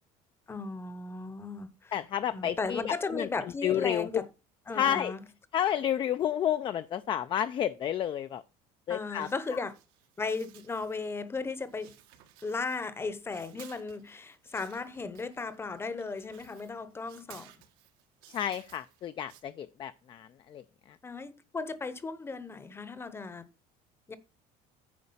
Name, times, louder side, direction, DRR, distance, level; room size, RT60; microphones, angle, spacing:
voice 1, 0.5-1.9 2.3-4.2 4.7-5.2 8.9-9.8 10.2-11.9 12.4-17.5 21.0-23.4 24.1-24.2, left 4 dB, 15° left, 0.8 m, -36 dB
voice 2, 1.9-3.3 3.6-4.1 4.7-5.1 5.5-8.4 8.9-9.3 18.3-21.0, left 10 dB, 30° left, 0.4 m, -31 dB
sound 1, 9.2-11.3 11.6-13.0 13.2-19.4, right 12 dB, 80° right, 1.6 m, -57 dB
9.5 x 4.9 x 5.5 m
cardioid pair, 145°, 16 cm